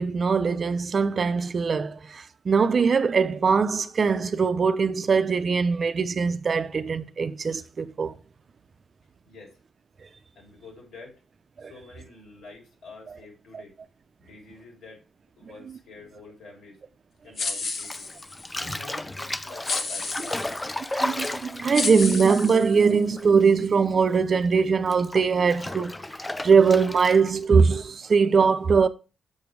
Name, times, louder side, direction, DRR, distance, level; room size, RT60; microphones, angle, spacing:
voice 1, 0.0-8.1 11.6-11.7 21.0-25.9 26.4-28.9, right 5 dB, 50° right, 0.6 m, -21 dB
voice 2, 9.3-9.6 10.4-11.1 11.6-13.7 14.2-15.0 15.4-16.8 17.2-18.1 18.6-20.6, left 3 dB, 90° left, 3.9 m, -47 dB
sound 1, 17.4-18.5 19.6-20.6 21.2-21.3 21.7-23.1, left 3 dB, 60° left, 1.3 m, -31 dB
Bathtub (filling or washing), 17.8-23.6 23.9-27.4, left 1 dB, 15° left, 0.5 m, -34 dB
7.1 x 5.1 x 4.7 m
cardioid pair, 85°, 0 cm